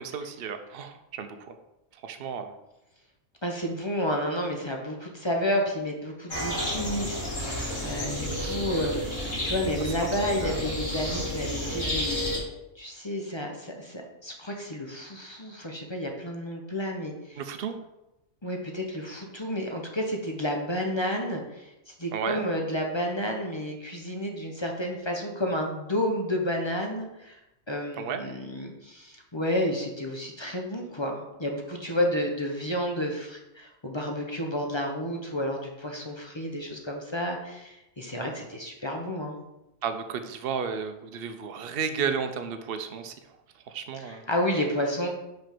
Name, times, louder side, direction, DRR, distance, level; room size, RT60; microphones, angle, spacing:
voice 1, 0.0-1.5 2.0-2.5 8.2-9.0 10.0-10.1 10.4-10.6 17.4-17.8 22.1-22.5 28.0-28.2 39.8-43.1 43.7-44.2, right 6 dB, 55° right, 8 dB, 0.8 m, -33 dB
voice 2, 3.4-12.2 12.8-17.4 18.4-27.4 27.7-39.4 44.0-45.1, equal, 25° left, 1 dB, 0.8 m, -31 dB
sound 1, 6.3-12.4, left 1 dB, 55° left, 2.7 m, -31 dB
5.2 x 5.2 x 5.9 m, 0.93 s
omnidirectional pair, 1.4 m